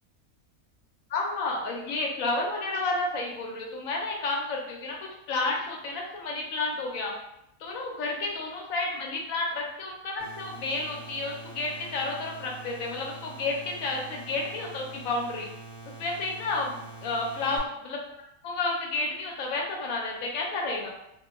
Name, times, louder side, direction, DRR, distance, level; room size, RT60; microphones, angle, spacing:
voice 1, 1.1-5.0 5.3-7.1 7.6-15.5 16.0-18.0 18.4-20.9, left 3 dB, 70° left, -1 dB, 1.0 m, -31 dB
sound 1, 10.2-17.6, right 3 dB, 10° right, 0.5 m, -45 dB
2.4 x 2.2 x 3.0 m, 0.83 s
omnidirectional pair, 1.5 m